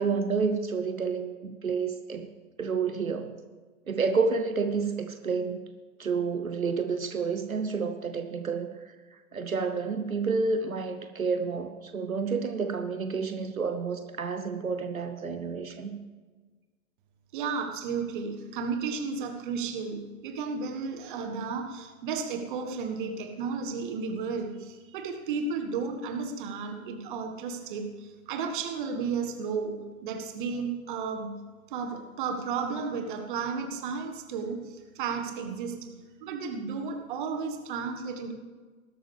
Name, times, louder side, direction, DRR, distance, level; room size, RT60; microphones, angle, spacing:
voice 1, 0.0-2.3 2.6-3.3 3.9-5.6 6.0-8.9 9.3-16.0, right 5 dB, 75° right, 8 dB, 1.1 m, -29 dB
voice 2, 17.3-29.7 30.0-31.4 31.7-35.9 36.2-38.3, right 5 dB, 35° right, 5 dB, 1.6 m, -33 dB
20.0 x 12.0 x 3.5 m, 1.4 s
figure-of-eight pair, 115°, 42 cm